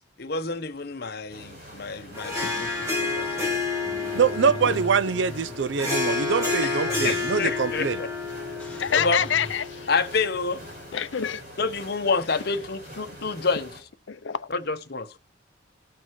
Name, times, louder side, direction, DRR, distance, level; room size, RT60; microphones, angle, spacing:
voice 1, 0.2-3.7 6.6-8.1 8.9-9.3 9.9-10.6 11.6-13.9 14.5-15.1, left 4 dB, 55° left, 1.0 m, -28 dB
sound 1, 1.3-13.8, equal, 50° right, 6.1 m, -44 dB
Harp, 2.1-10.8, left 3 dB, 15° right, 1.7 m, -30 dB
Car / Engine starting / Idling, 3.8-9.6, left 1 dB, 5° left, 1.6 m, -42 dB
voice 2, 4.1-8.0, right 6 dB, 70° right, 0.4 m, -24 dB
voice 3, 8.8-9.9 10.9-11.4 14.1-14.5, left 8 dB, 75° left, 0.6 m, -27 dB
18.0 x 6.3 x 3.1 m
head